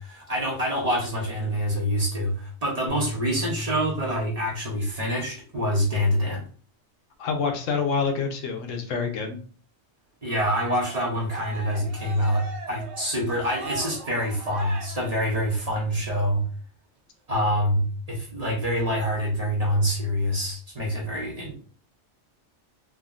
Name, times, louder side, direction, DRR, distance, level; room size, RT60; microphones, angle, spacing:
voice 1, 0.0-6.4 10.2-16.4 17.3-21.6, equal, 40° right, -3 dB, 0.7 m, -26 dB
sound 1, 2.9-5.4, equal, 60° left, 1.2 m, -36 dB
voice 2, 7.2-9.4, left 5 dB, 90° left, 4 dB, 1.0 m, -27 dB
Cheering, 10.3-15.8, right 2 dB, 65° right, 1.0 m, -39 dB
3.5 x 2.1 x 2.4 m, 0.41 s
omnidirectional pair, 1.3 m